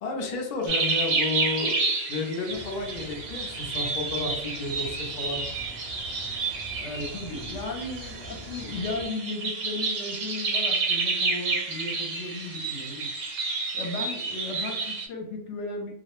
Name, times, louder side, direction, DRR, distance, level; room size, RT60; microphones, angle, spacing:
voice 1, 0.0-5.4, left 3 dB, 55° left, 1 dB, 0.5 m, -32 dB
sound 1, 0.7-15.1, right 4 dB, 90° right, 0.9 m, -30 dB
sound 2, 2.5-9.0, right 2 dB, 65° right, 0.8 m, -43 dB
voice 2, 6.8-13.1 13.7-15.9, left 2 dB, 75° left, 1 dB, 0.9 m, -35 dB
2.3 x 2.0 x 2.9 m, 0.75 s
omnidirectional pair, 1.2 m